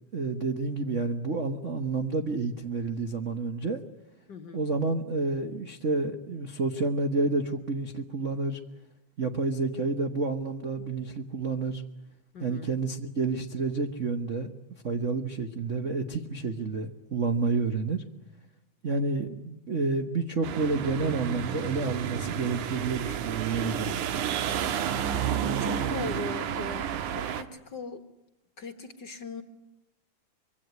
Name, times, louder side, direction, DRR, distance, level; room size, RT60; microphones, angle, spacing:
voice 1, 0.1-3.8 4.5-8.6 9.2-11.8 12.4-14.5 14.8-18.0 18.8-23.9, right 3 dB, 55° right, 6 dB, 0.8 m, -29 dB
voice 2, 4.3-4.6 12.3-12.7 25.6-28.1 28.6-29.4, left 3 dB, 45° left, 8 dB, 1.7 m, -39 dB
sound 1, 20.4-27.4, right 9 dB, 75° right, 2.7 m, -31 dB
25.0 x 23.5 x 9.6 m, 0.87 s
omnidirectional pair, 3.6 m